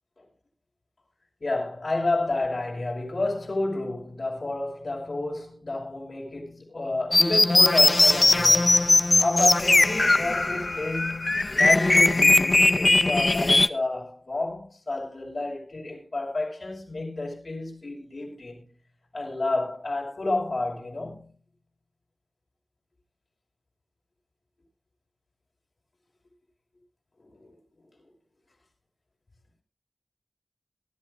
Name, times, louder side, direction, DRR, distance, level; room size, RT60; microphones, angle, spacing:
voice 1, 1.4-8.8 9.2-18.7 19.1-21.3 27.2-27.6 28.0-28.1, left 2 dB, 70° left, 5.5 m, -30 dB
sound 1, 7.1-13.7, left 2 dB, 45° left, 0.6 m, -20 dB
21.5 x 12.0 x 2.6 m
wide cardioid pair, 75°, 0 cm